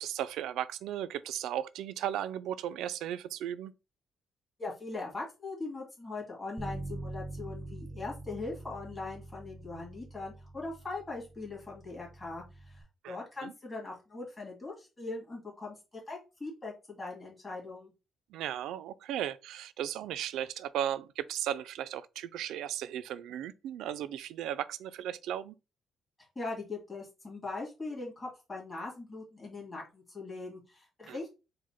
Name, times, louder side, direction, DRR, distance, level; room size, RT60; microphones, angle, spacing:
voice 1, 0.0-3.7 13.0-13.2 13.4-13.5 18.3-25.6 31.1-31.2, right 11 dB, 90° right, 0.3 m, -36 dB
voice 2, 4.6-15.8 16.1-17.9 26.4-31.3, left 3 dB, 20° left, 1.9 m, -41 dB
Bass guitar, 6.6-12.8, right 2 dB, 5° right, 0.7 m, -44 dB
4.7 x 2.2 x 4.3 m
cardioid pair, 135°, 0 cm